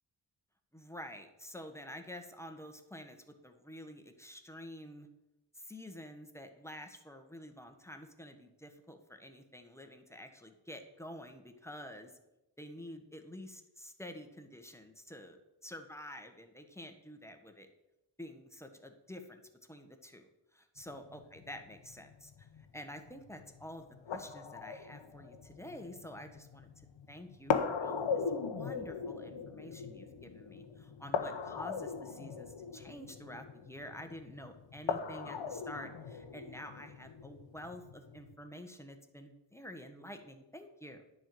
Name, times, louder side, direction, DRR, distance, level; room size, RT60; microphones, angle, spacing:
voice 1, 0.7-5.1 5.5-12.1 12.6-17.7 18.2-19.4 19.7-41.0, left 1 dB, 5° left, 5 dB, 1.4 m, -49 dB
sound 1, 20.8-38.3, left 5 dB, 75° left, 0.9 m, -40 dB
10.0 x 4.6 x 7.8 m, 0.95 s
cardioid pair, 55°, 45 cm